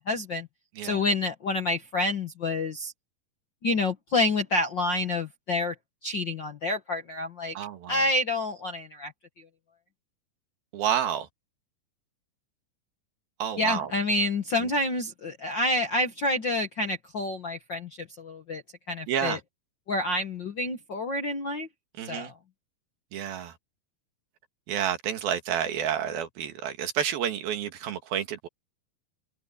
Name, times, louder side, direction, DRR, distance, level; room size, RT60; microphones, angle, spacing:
voice 1, 0.1-0.5 0.8-2.9 3.6-5.7 6.0-7.6 7.9-9.1 13.6-18.6 18.9-19.4 19.9-21.7 22.0-22.3, left 2 dB, 60° left, 1.2 m, -28 dB
voice 2, 7.6-8.0 10.7-11.3 13.4-13.9 19.1-19.4 22.0-22.3 23.1-23.5 24.7-28.5, right 9 dB, 85° right, 3.8 m, -29 dB
omnidirectional pair, 4.1 m